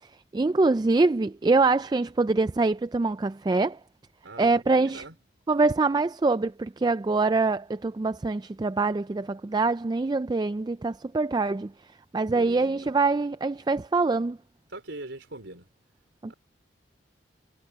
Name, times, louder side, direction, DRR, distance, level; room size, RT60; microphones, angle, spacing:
voice 1, 0.3-3.8 4.4-5.0 5.5-11.7 12.1-14.4 16.2-16.3, right 3 dB, 20° right, 0.3 m, -24 dB
voice 2, 4.2-5.2 12.2-12.9 14.7-15.7 16.3-16.4, right 2 dB, 85° right, 4.1 m, -42 dB
head